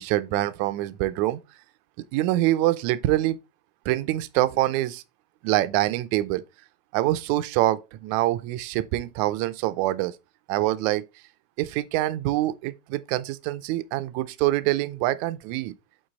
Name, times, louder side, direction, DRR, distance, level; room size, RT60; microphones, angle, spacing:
voice 1, 0.0-1.4 2.1-3.4 3.8-5.0 5.4-6.4 6.9-10.1 10.5-11.0 11.6-15.7, right 16 dB, 80° right, 1.7 m, -25 dB
7.9 x 4.0 x 4.0 m
omnidirectional pair, 3.9 m